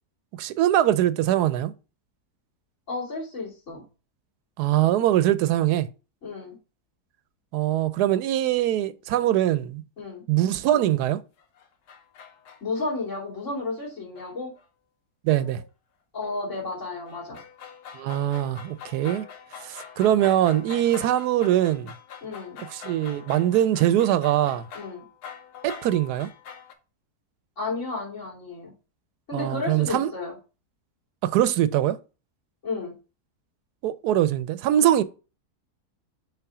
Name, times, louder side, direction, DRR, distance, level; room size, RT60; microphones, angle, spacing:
voice 1, 0.4-1.7 4.6-5.9 7.5-9.8 10.3-11.2 15.2-15.6 17.9-19.3 19.6-21.9 22.7-24.7 25.6-26.3 29.3-30.1 31.2-32.0 33.8-35.0, right 12 dB, 90° right, 1.1 m, -22 dB
voice 2, 2.9-3.8 6.2-6.6 10.0-10.2 12.6-14.5 16.1-17.4 22.2-22.6 24.7-25.0 27.6-28.7 29.3-30.3 32.6-32.9, left 3 dB, 50° left, 3.1 m, -32 dB
sound 1, 11.4-12.9 13.8-13.9 14.2-14.6 15.3-15.7 16.2-26.7, left 7 dB, 80° left, 1.4 m, -44 dB
5.7 x 3.8 x 4.8 m
omnidirectional pair, 1.7 m